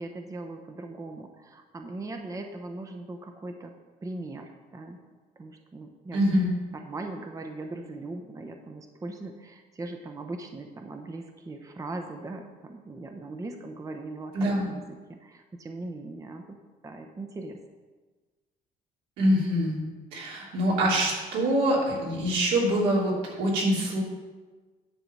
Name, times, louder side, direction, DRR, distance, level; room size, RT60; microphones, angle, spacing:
voice 1, 0.0-3.7 4.0-5.0 5.4-6.2 6.7-16.6 16.8-17.6, right 2 dB, 20° right, 5 dB, 0.7 m, -39 dB
voice 2, 6.1-6.5 14.3-14.7 19.2-19.8 20.1-24.0, equal, 85° right, -4 dB, 3.1 m, -24 dB
10.5 x 3.9 x 7.4 m, 1.3 s
cardioid pair, 110°, 17 cm